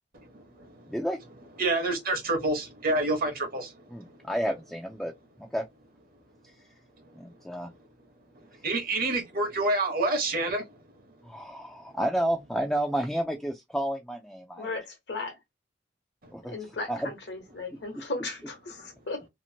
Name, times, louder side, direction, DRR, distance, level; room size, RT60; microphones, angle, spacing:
voice 1, 0.2-0.9 1.6-4.3 7.0-7.1 8.3-10.8 16.2-16.3, right 2 dB, 55° right, 1.0 m, -29 dB
voice 2, 0.9-1.2 3.9-5.1 5.4-5.6 7.1-7.7 11.2-14.7 16.3-16.6 16.9-17.1, right 1 dB, ahead, 0.4 m, -31 dB
voice 3, 14.5-15.3 16.4-19.3, left 3 dB, 65° left, 1.1 m, -36 dB
2.9 x 2.5 x 2.7 m
head